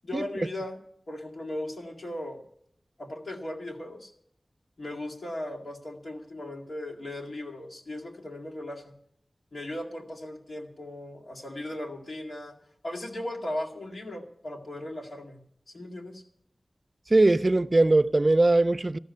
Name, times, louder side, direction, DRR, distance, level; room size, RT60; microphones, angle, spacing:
voice 1, 0.0-0.8 1.1-2.4 3.0-4.1 4.8-8.9 9.5-12.5 12.8-15.4 15.7-16.2, left 1 dB, 85° left, 2.0 m, -37 dB
voice 2, 17.1-19.0, right 2 dB, 40° right, 0.4 m, -20 dB
13.5 x 6.5 x 9.4 m
wide cardioid pair, 65°, 0 cm